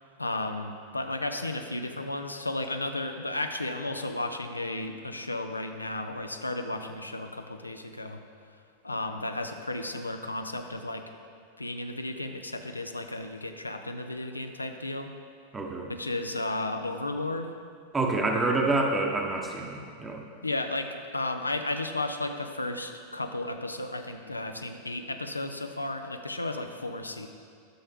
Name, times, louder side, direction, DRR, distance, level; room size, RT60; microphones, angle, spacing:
voice 1, 0.2-8.2 8.8-11.1 11.6-15.1 15.8-17.5 20.4-27.3, left 2 dB, 85° left, 6 dB, 0.5 m, -33 dB
voice 2, 15.5-15.9 17.9-20.2, right 2 dB, 15° right, 1 dB, 1.0 m, -27 dB
11.5 x 6.6 x 3.5 m, 2.3 s
figure-of-eight pair, 90°, 0 cm